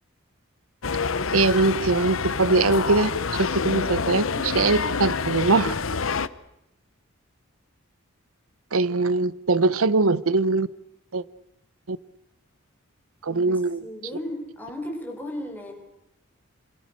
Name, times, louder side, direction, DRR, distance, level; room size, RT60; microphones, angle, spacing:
sound 1, 0.8-6.3, left 5 dB, 75° left, 1.0 m, -27 dB
voice 1, 1.3-3.1 3.5-4.2 4.5-5.7 8.7-10.7 11.1-11.2 11.9-12.0 13.2-13.8, right 3 dB, 85° right, 0.9 m, -21 dB
voice 2, 13.3-15.7, left 1 dB, 10° left, 5.7 m, -36 dB
27.5 x 27.0 x 6.6 m
head